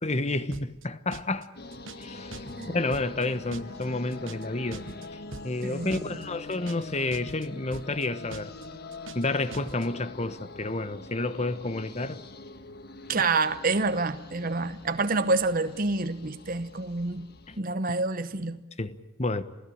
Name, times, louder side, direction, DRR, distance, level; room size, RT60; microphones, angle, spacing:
voice 1, 0.0-1.5 2.0-2.4 2.7-4.8 5.4-8.5 9.1-12.2 17.5-17.6 18.8-19.4, left 2 dB, 35° left, 1.1 m, -30 dB
sound 1, 0.5-0.9 1.1-1.5 1.7-2.1 2.3-2.7 2.9-3.3 3.5-3.9 4.1-4.5 4.7-5.1 5.3-5.7 5.9-6.3 6.5-6.9 7.1-7.5 7.7-8.1 8.3-8.7 8.9-9.3 9.5-9.9, right 3 dB, 70° right, 1.0 m, -43 dB
sound 2, 1.6-17.6, left 3 dB, 50° left, 1.5 m, -44 dB
voice 2, 5.6-6.0 13.1-17.3 17.6-18.6, right 3 dB, 45° right, 1.0 m, -27 dB
27.5 x 17.0 x 8.7 m
head